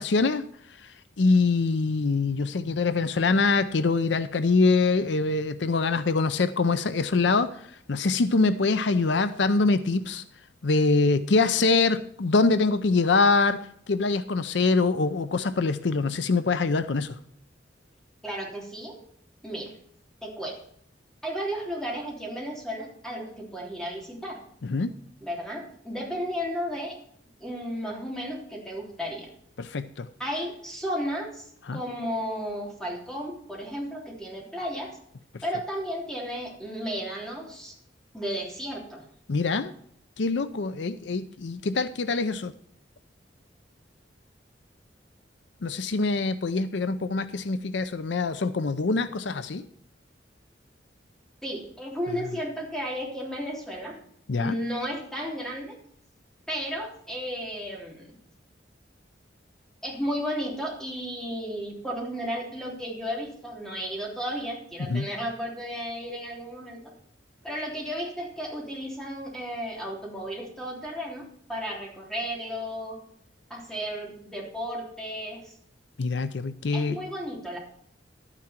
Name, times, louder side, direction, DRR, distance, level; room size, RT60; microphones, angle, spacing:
voice 1, 0.0-10.2 10.6-17.2 24.6-24.9 29.6-30.1 31.7-31.8 39.3-39.7 40.2-42.5 45.6-49.6 54.3-54.6 64.8-65.1 76.0-77.0, left 3 dB, 70° left, 12 dB, 0.6 m, -24 dB
voice 2, 18.2-19.0 19.4-19.7 20.2-20.6 21.2-24.4 25.2-27.0 27.4-29.3 30.2-34.9 35.4-37.7 38.1-39.0 51.4-54.0 54.4-55.8 56.5-58.2 59.8-66.9 67.4-73.0 73.5-75.5 76.7-77.6, equal, 5° left, -3 dB, 3.3 m, -33 dB
11.5 x 9.8 x 4.4 m, 0.66 s
head